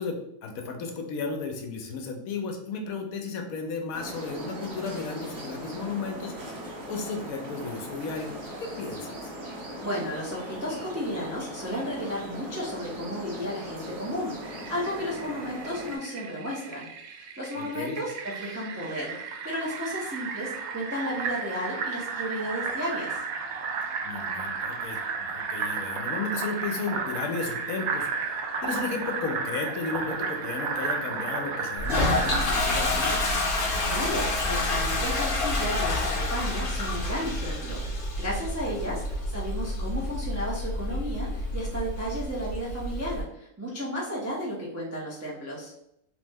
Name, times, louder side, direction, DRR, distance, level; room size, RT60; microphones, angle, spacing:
voice 1, 0.0-6.6 6.9-8.3 8.6-9.2 17.5-18.0 24.0-33.2 38.6-39.0, left 4 dB, 80° left, 3 dB, 1.0 m, -34 dB
sound 1, 3.9-16.0, equal, 55° right, 1.4 m, -39 dB
voice 2, 9.8-23.2 33.9-45.7, equal, 20° right, -6 dB, 0.4 m, -33 dB
Fill (with liquid), 14.4-32.4, right 5 dB, 80° right, 1.0 m, -33 dB
Toilet flush, 31.8-43.2, left 2 dB, 45° left, 0.8 m, -28 dB
3.3 x 2.1 x 3.3 m, 0.79 s
omnidirectional pair, 1.5 m